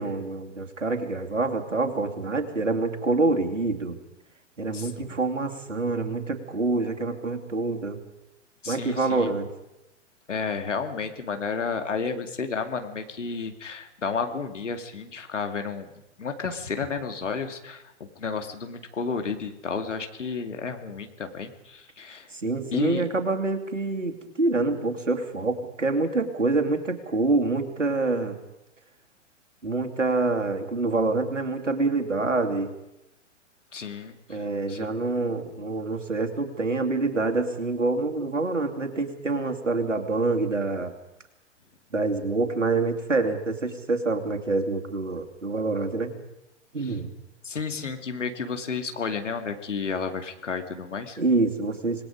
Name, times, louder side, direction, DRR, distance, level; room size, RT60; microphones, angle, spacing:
voice 1, 0.0-3.9 4.6-8.0 8.7-9.5 22.3-28.4 29.6-32.7 34.3-40.9 41.9-46.1 46.7-47.1 51.2-52.0, right 3 dB, 85° right, 3 dB, 2.9 m, -26 dB
voice 2, 4.7-5.2 8.6-9.3 10.3-15.9 16.2-22.3 22.7-23.0 33.7-34.4 34.7-34.8 46.8-46.9 47.4-51.2, left 5 dB, 75° left, 6 dB, 2.5 m, -32 dB
26.5 x 19.5 x 5.2 m, 0.90 s
figure-of-eight pair, 105°, 37 cm